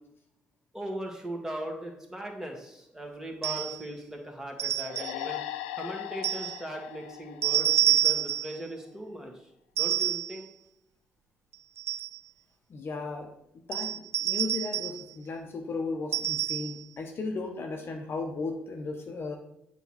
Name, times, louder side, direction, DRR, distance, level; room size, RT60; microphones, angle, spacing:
voice 1, 0.7-5.4 5.7-9.5 9.8-10.5, right 1 dB, 10° right, 1 dB, 1.9 m, -39 dB
sound 1, 3.4-3.8 4.6-5.2 6.2-6.6 7.4-8.6 9.8-10.4 11.5-12.2 13.7-15.0 16.1-16.8, right 12 dB, 60° right, 0.4 m, -28 dB
sound 2, 4.9-8.3, left 13 dB, 85° left, 0.3 m, -39 dB
voice 2, 12.7-13.3 13.7-19.4, left 3 dB, 50° left, 3 dB, 0.9 m, -35 dB
7.9 x 3.2 x 5.8 m, 0.79 s
hypercardioid pair, 50°, 5 cm